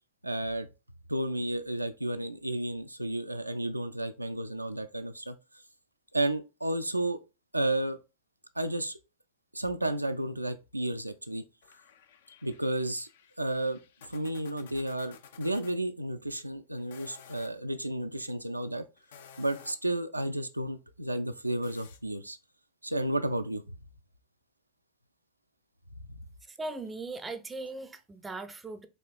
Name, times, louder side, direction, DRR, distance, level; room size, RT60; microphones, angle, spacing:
voice 1, 0.2-0.7 1.1-5.4 6.1-7.2 7.5-8.0 8.6-9.0 9.5-11.4 12.4-13.1 13.4-13.8 14.1-18.8 19.4-22.4 22.8-23.6, right 1 dB, 85° right, 0.3 m, -32 dB
sound 1, 11.6-15.8 16.8-17.5 19.0-19.9 21.6-22.0, left 8 dB, 60° left, 0.5 m, -54 dB
voice 2, 26.5-28.9, right 2 dB, 15° right, 0.5 m, -39 dB
4.2 x 2.9 x 2.4 m
figure-of-eight pair, 90°, 0 cm